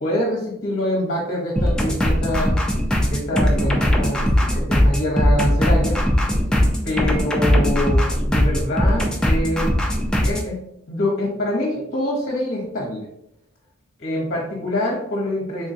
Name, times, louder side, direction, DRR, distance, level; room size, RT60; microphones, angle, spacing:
voice 1, 0.0-2.6 3.1-6.0 6.8-9.7 10.2-10.6 10.9-13.1 14.0-15.7, left 1 dB, 45° left, -2 dB, 0.9 m, -25 dB
sound 1, 1.6-10.5, equal, 5° left, 0.5 m, -19 dB
3.7 x 3.5 x 2.7 m, 0.76 s
head